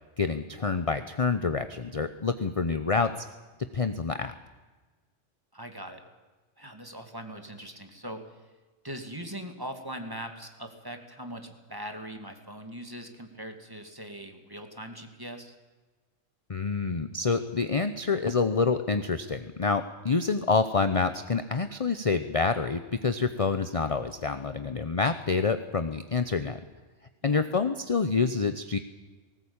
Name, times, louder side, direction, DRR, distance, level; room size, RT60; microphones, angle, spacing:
voice 1, 0.2-3.1 3.7-4.3 16.5-26.6 27.2-28.8, left 4 dB, 30° left, 10 dB, 0.8 m, -27 dB
voice 2, 5.5-6.0 6.6-8.2 8.8-15.5 27.2-27.5, right 1 dB, 20° right, 5 dB, 2.4 m, -41 dB
19.5 x 18.5 x 8.8 m, 1.3 s
omnidirectional pair, 1.2 m